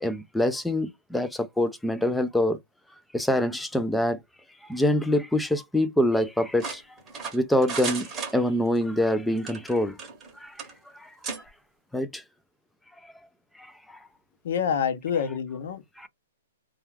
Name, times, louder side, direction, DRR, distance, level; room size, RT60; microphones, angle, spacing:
voice 1, 0.0-2.6 3.1-4.2 4.7-6.8 7.3-10.0 10.4-10.6 10.9-11.1 11.9-12.2 13.0-13.1 13.6-14.0 16.0-16.1, left 1 dB, ahead, 0.3 m, -25 dB
sound 1, 6.6-8.8 9.4-10.3 10.6-10.7 11.2-11.4, right 5 dB, 15° right, 0.8 m, -35 dB
voice 2, 14.4-16.1, left 7 dB, 60° left, 0.6 m, -28 dB
2.3 x 2.3 x 3.1 m
hypercardioid pair, 160°, 0 cm